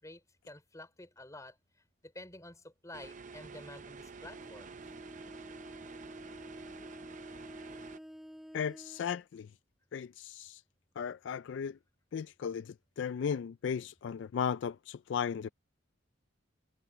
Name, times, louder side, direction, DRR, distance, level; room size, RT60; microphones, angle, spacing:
voice 1, 0.0-1.6 2.0-4.8, left 1 dB, 15° left, 3.9 m, -50 dB
sound 1, 2.9-8.0, right 4 dB, 40° right, 0.7 m, -49 dB
Bowed string instrument, 4.2-9.1, equal, ahead, 3.1 m, -50 dB
voice 2, 8.5-9.5 9.9-10.6 11.0-11.8 12.1-15.5, left 7 dB, 60° left, 0.3 m, -36 dB
head